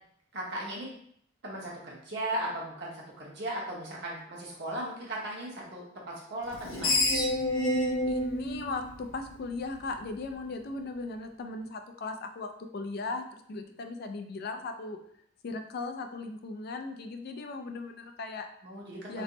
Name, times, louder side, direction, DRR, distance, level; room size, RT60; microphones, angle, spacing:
voice 1, 0.3-0.9 1.4-7.1 18.6-19.2, right 1 dB, 60° right, -4 dB, 1.0 m, -37 dB
Screech, 6.5-9.7, left 1 dB, 80° left, 0.7 m, -29 dB
voice 2, 8.1-12.5 12.7-13.2 13.5-15.0 15.4-18.5 19.1-19.2, left 3 dB, 50° left, 6 dB, 0.3 m, -37 dB
3.3 x 2.1 x 3.8 m, 0.68 s
head